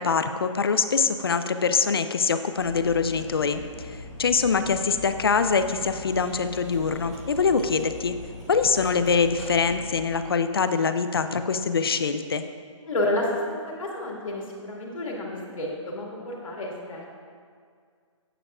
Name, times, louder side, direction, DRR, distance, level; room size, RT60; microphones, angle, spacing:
voice 1, 0.0-8.2 8.5-12.4, left 5 dB, 50° left, 10 dB, 0.4 m, -24 dB
Cutlery silverware, 2.5-10.2, left 2 dB, ahead, 0.8 m, -41 dB
voice 2, 12.9-17.1, left 1 dB, 85° left, -2 dB, 2.2 m, -30 dB
11.5 x 8.9 x 2.4 m, 2.1 s
hypercardioid pair, 180°, 17 cm